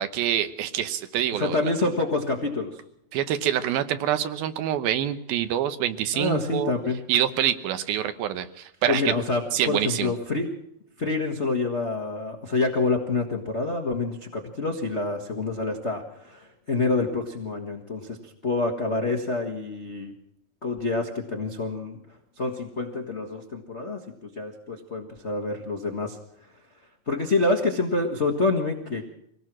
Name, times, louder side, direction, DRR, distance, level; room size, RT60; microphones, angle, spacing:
voice 1, 0.0-1.6 3.1-6.7 7.1-9.1 9.5-10.1, right 11 dB, 90° right, 10 dB, 2.9 m, -26 dB
voice 2, 1.3-2.8 6.1-7.0 8.9-10.5 11.0-20.1 20.6-22.0 22.4-26.2 27.1-29.1, left 3 dB, 75° left, 1 dB, 0.6 m, -27 dB
24.5 x 18.0 x 6.1 m, 0.76 s
omnidirectional pair, 4.1 m